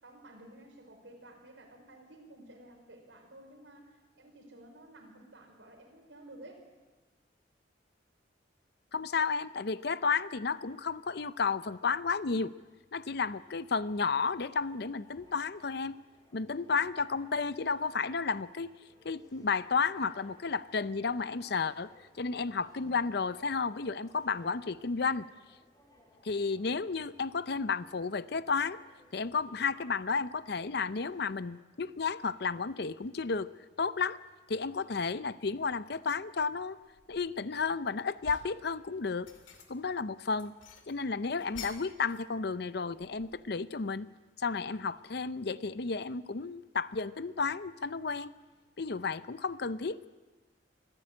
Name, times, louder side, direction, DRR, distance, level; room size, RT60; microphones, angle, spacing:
voice 1, 0.0-6.6, right 1 dB, 80° right, 2 dB, 5.1 m, -53 dB
voice 2, 8.9-12.5 12.9-16.0 16.3-18.7 19.0-21.9 22.2-25.3 26.2-28.8 29.1-33.5 33.8-34.2 34.5-36.8 37.1-39.3 39.7-40.5 40.9-44.1 44.4-48.3 48.8-50.1, left 4 dB, 60° left, 15 dB, 0.6 m, -32 dB
sound 1, 13.9-31.4, left 1 dB, 20° left, 3.5 m, -62 dB
sound 2, 35.9-36.1 36.6-37.6 38.0-38.6 39.1-39.9 40.3-42.3 42.5-43.6, left 5 dB, 90° left, 2.5 m, -50 dB
25.0 x 14.5 x 8.7 m, 1.3 s
head